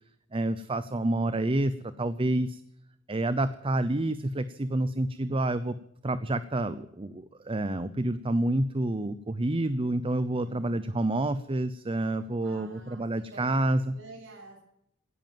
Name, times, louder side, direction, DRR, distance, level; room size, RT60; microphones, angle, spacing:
voice 1, 0.3-1.7 2.0-2.6 3.1-5.7 6.0-13.9, right 1 dB, 25° right, 13 dB, 0.7 m, -28 dB
voice 2, 10.4-10.9 12.4-13.4 13.8-14.6, right 2 dB, 70° right, 0 dB, 7.1 m, -49 dB
16.5 x 11.0 x 7.5 m, 0.76 s
head